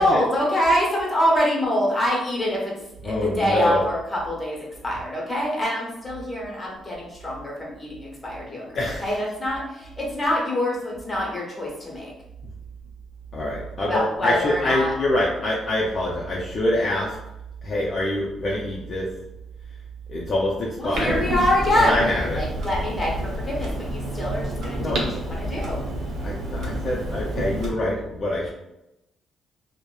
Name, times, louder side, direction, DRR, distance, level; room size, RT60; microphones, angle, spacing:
voice 1, 0.0-2.7 3.0-4.6 4.8-12.1 13.8-14.9 20.8-25.8, left 1 dB, 20° left, -3 dB, 1.0 m, -25 dB
voice 2, 3.0-3.8 8.8-9.2 13.3-17.1 17.6-19.1 20.1-21.2 21.8-22.4 24.8-25.0 26.2-28.5, left 1 dB, 45° left, -5 dB, 0.4 m, -25 dB
Clock, 20.9-27.7, right 1 dB, 70° right, 0.6 m, -29 dB
2.8 x 2.1 x 2.2 m, 0.91 s
cardioid pair, 90°, 0 cm